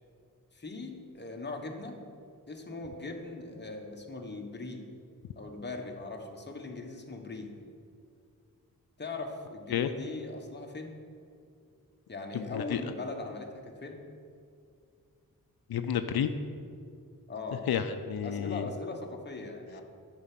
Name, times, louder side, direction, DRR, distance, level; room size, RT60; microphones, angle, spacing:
voice 1, 0.5-2.1 2.5-4.8 5.4-7.5 9.0-10.9 12.1-14.0 17.3-17.6 18.2-19.8, left 3 dB, 30° left, 2 dB, 1.1 m, -40 dB
voice 2, 12.3-12.8 15.7-16.3 17.7-18.7, left 9 dB, 90° left, 9 dB, 0.5 m, -30 dB
10.5 x 4.6 x 7.5 m, 2.3 s
wide cardioid pair, 120°, 36 cm